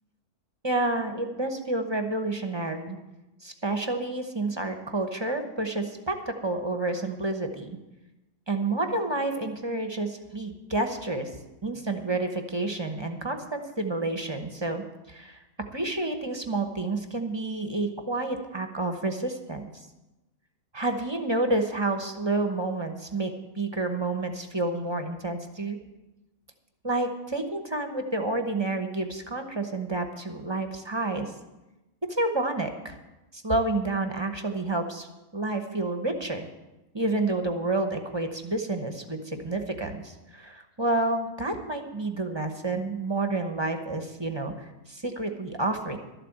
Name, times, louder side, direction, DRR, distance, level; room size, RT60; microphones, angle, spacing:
voice 1, 0.6-3.0 3.4-7.8 8.5-11.3 11.6-15.4 15.7-19.6 20.7-25.8 26.8-31.3 32.1-33.0 33.3-35.1 35.3-36.5 36.9-46.0, right 2 dB, 20° right, 6 dB, 0.9 m, -29 dB
12.5 x 7.7 x 7.7 m, 1.0 s
omnidirectional pair, 1.6 m